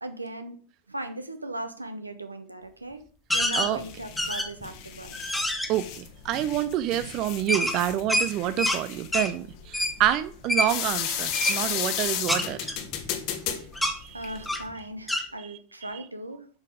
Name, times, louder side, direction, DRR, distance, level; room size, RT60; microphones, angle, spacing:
voice 1, 0.0-0.6 0.9-3.0 3.3-5.1 14.1-16.5, right 1 dB, 85° right, 0.9 m, -38 dB
sound 1, 3.3-14.7, left 9 dB, 45° left, 1.3 m, -34 dB
sound 2, 3.3-3.7 4.2-4.7 5.1-5.7 7.5-8.8 9.1-9.3 9.7-10.0 10.5-10.7 11.3-11.6 12.3-13.4 13.8-14.0 14.5-14.7 15.1-15.3, left 1 dB, ahead, 1.0 m, -26 dB
voice 2, 5.7-12.6 14.0-14.2, right 12 dB, 40° right, 0.4 m, -27 dB
7.3 x 5.7 x 5.0 m
figure-of-eight pair, 90°, 0 cm